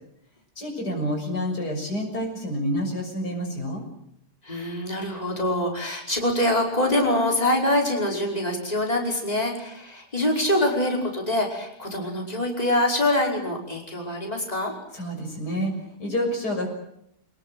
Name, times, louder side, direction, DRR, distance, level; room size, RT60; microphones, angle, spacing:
voice 1, 0.6-3.8 14.9-15.7 16.0-16.7, equal, 90° left, 2 dB, 6.9 m, -28 dB
voice 2, 4.4-14.7, left 1 dB, 25° left, 0 dB, 5.5 m, -24 dB
27.5 x 19.5 x 7.9 m, 0.76 s
omnidirectional pair, 1.7 m